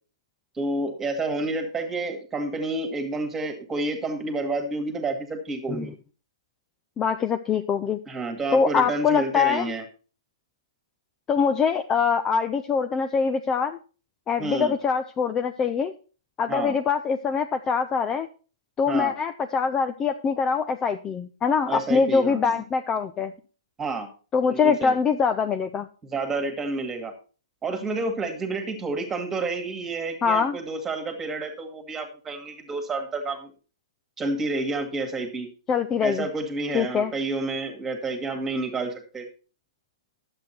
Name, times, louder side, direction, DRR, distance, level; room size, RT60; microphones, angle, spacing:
voice 1, 0.6-6.0 8.1-9.8 14.4-14.8 16.5-16.8 18.9-19.1 21.7-22.5 23.8-24.1 24.5-25.0 26.0-27.1 27.6-33.5 34.2-35.5 36.0-39.3, right 3 dB, 10° right, 6 dB, 1.8 m, -29 dB
voice 2, 7.0-8.0 8.5-9.7 11.3-13.8 14.3-15.9 16.4-18.3 18.8-23.3 24.3-25.9 30.2-30.6 35.7-36.3 36.7-37.1, left 6 dB, 15° left, 8 dB, 0.4 m, -23 dB
10.5 x 7.8 x 4.3 m, 0.37 s
hypercardioid pair, 150°, 3 cm